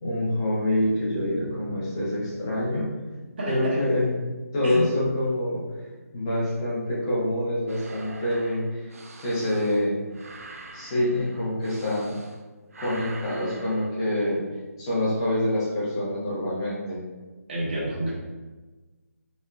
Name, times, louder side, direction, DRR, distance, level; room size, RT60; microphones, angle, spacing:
voice 1, 0.0-2.9 3.5-4.3 4.5-5.6 6.1-8.9 9.2-10.0 10.7-12.2 12.8-14.4 14.8-17.0, left 1 dB, 15° left, -8 dB, 0.9 m, -26 dB
sound 1, 0.8-7.4, left 1 dB, 65° left, 1.0 m, -44 dB
voice 2, 3.4-3.8 4.6-4.9 17.5-18.1, right 1 dB, 40° right, -7 dB, 1.3 m, -28 dB
sound 2, 7.7-12.4 12.7-13.9, right 3 dB, 60° right, 0.4 m, -44 dB
4.2 x 2.8 x 2.4 m, 1.2 s
figure-of-eight pair, 170°, 9 cm